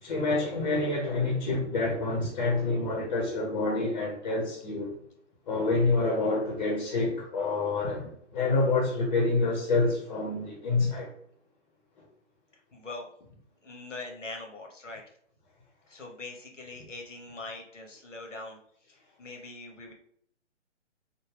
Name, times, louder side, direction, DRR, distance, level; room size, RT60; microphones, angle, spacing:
voice 1, 0.0-5.0 5.5-11.1, left 3 dB, 35° left, 0.8 m, -27 dB
voice 2, 12.7-13.1 13.6-15.0 15.9-18.6 18.9-19.9, left 2 dB, 80° left, 1.0 m, -42 dB
3.5 x 2.2 x 3.2 m
figure-of-eight pair, 130°, 37 cm